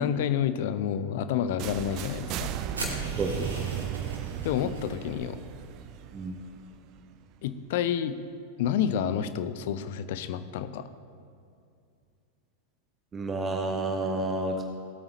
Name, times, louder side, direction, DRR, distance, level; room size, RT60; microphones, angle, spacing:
voice 1, 0.0-2.5 4.4-5.4 7.4-8.2 8.6-10.8, left 9 dB, 50° left, 12 dB, 0.6 m, -29 dB
sound 1, 1.6-7.4, right 10 dB, 40° right, 0.5 m, -36 dB
sound 2, 2.7-4.9, right 1 dB, 75° right, 2.5 m, -38 dB
voice 2, 3.2-3.5 6.1-6.4 13.1-14.6, right 2 dB, 20° right, 3 dB, 1.0 m, -30 dB
18.0 x 8.8 x 3.1 m, 2.5 s
figure-of-eight pair, 90°, 0 cm